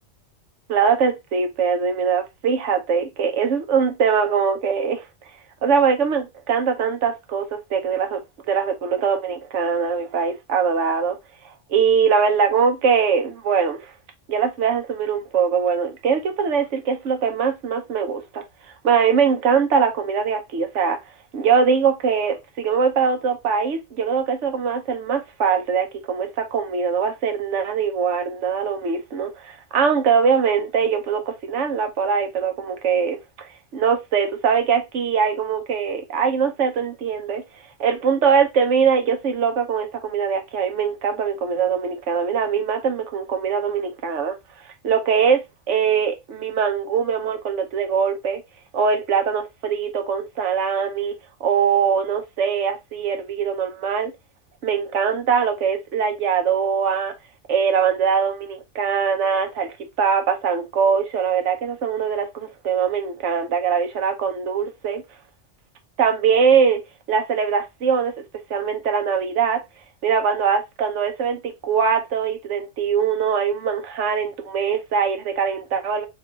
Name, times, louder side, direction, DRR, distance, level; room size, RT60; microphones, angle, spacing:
voice 1, 0.7-5.0 5.6-8.2 8.5-11.2 11.7-13.9 14.3-18.4 18.8-21.0 21.3-37.4 37.8-44.3 44.8-48.4 48.7-51.1 51.4-54.1 54.6-57.1 57.5-65.0 66.0-66.8 67.1-68.1 68.5-69.6 70.0-76.1, right 6 dB, 75° right, 1.1 m, -22 dB
3.4 x 3.4 x 3.7 m
omnidirectional pair, 1.3 m